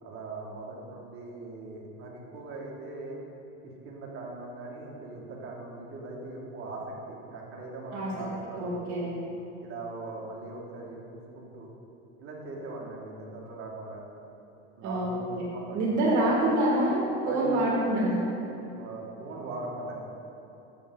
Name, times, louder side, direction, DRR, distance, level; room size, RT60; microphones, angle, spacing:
voice 1, 0.0-3.2 3.6-9.1 9.6-11.7 12.2-14.0 14.8-15.3 15.5-15.8 17.2-17.4 18.7-20.0, right 2 dB, 40° right, -2 dB, 1.6 m, -40 dB
voice 2, 8.6-9.1 14.8-15.1 15.3-15.4 15.7-18.2, right 1 dB, 55° right, -4 dB, 1.6 m, -26 dB
7.7 x 6.8 x 3.8 m, 3.0 s
supercardioid pair, 135°, 35 cm